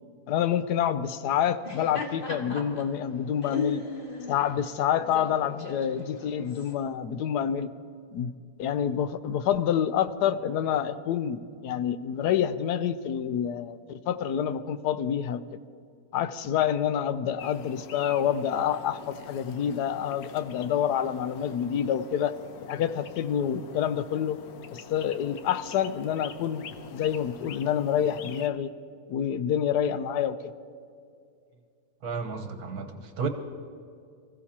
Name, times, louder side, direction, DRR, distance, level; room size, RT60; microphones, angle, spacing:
voice 1, 0.3-3.8 4.3-7.7 8.1-8.3 8.6-13.8 14.1-15.4 16.1-22.3 22.6-24.4 24.7-28.7 29.1-30.5, left 9 dB, 85° left, 12 dB, 1.2 m, -27 dB
Laughter, 1.6-6.7, left 4 dB, 35° left, 1.6 m, -37 dB
sound 1, 17.4-28.5, left 7 dB, 70° left, 1.2 m, -45 dB
voice 2, 32.0-33.3, right 5 dB, 70° right, 6 dB, 1.5 m, -33 dB
24.5 x 15.0 x 2.9 m, 2.4 s
omnidirectional pair, 1.7 m